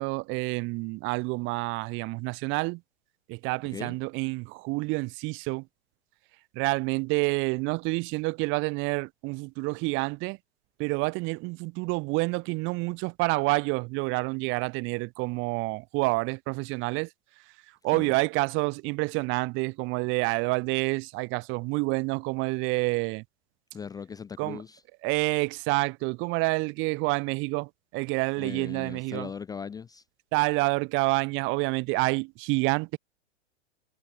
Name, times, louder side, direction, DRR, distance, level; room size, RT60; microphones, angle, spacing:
voice 1, 0.0-2.8 3.3-5.7 6.5-10.4 10.8-17.1 17.8-23.2 24.4-24.6 25.0-29.3 30.3-33.0, right 26 dB, 35° right, 1.4 m, -28 dB
voice 2, 23.7-24.8 28.4-30.0, left 6 dB, 10° left, 0.7 m, -39 dB
figure-of-eight pair, 105°, 35 cm